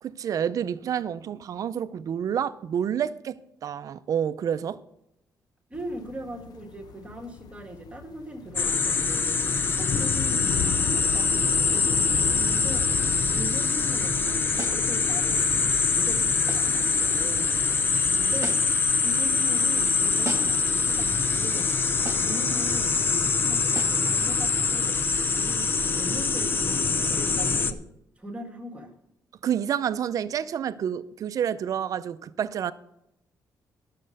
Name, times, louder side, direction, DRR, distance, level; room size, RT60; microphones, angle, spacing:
voice 1, 0.0-4.8 29.4-32.7, right 9 dB, 55° right, 0.5 m, -29 dB
sound 1, 5.7-21.3, left 7 dB, 70° left, 0.6 m, -39 dB
voice 2, 5.7-12.9 13.3-17.6 18.1-18.6 19.0-21.7 22.2-25.0 25.3-27.8 28.2-28.9, right 1 dB, 20° right, 1.6 m, -39 dB
sound 2, 8.5-27.7, left 4 dB, 30° left, 0.6 m, -24 dB
sound 3, 14.6-14.9 16.5-16.8 18.4-18.8 20.2-20.7 22.0-22.4 23.7-24.1, right 4 dB, 40° right, 1.4 m, -37 dB
12.5 x 6.6 x 6.5 m
cardioid pair, 135°, 7 cm